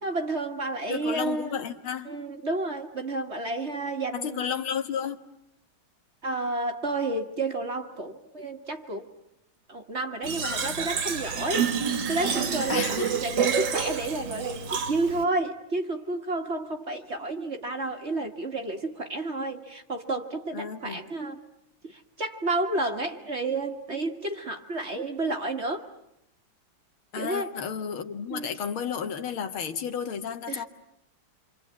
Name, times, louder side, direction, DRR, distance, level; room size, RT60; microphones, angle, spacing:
voice 1, 0.0-1.6 2.0-4.4 6.2-9.1 9.7-21.4 21.8-25.8 27.2-27.5 28.3-28.5 30.5-30.6, right 2 dB, 35° right, 5 dB, 1.6 m, -31 dB
voice 2, 0.9-2.1 4.1-5.2 12.7-13.2 20.5-21.0 27.1-30.6, left 7 dB, 75° left, 7 dB, 2.3 m, -32 dB
Fill (with liquid), 10.2-15.2, right 7 dB, 60° right, 2.2 m, -28 dB
27.5 x 25.5 x 8.4 m, 0.81 s
omnidirectional pair, 2.3 m